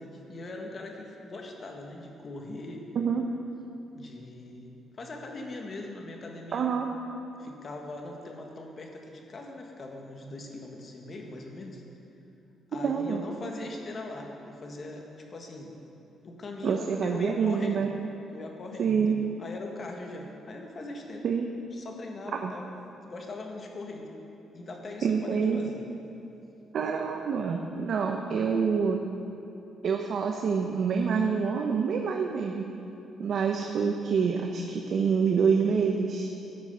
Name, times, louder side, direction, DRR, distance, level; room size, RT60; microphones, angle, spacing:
voice 1, 0.0-2.8 3.9-6.7 7.4-11.8 12.7-15.7 16.2-17.9 18.3-21.3 21.7-22.7 23.0-24.2 24.5-25.8, left 2 dB, 45° left, 1 dB, 1.8 m, -41 dB
voice 2, 6.5-6.9 12.8-13.2 16.6-17.9 18.8-19.1 21.2-21.5 22.3-22.5 25.0-25.6 26.7-29.0 29.8-32.6 33.2-36.3, right 6 dB, 60° right, 3 dB, 0.8 m, -26 dB
13.0 x 9.4 x 5.6 m, 2.9 s
cardioid pair, 90°, 0 cm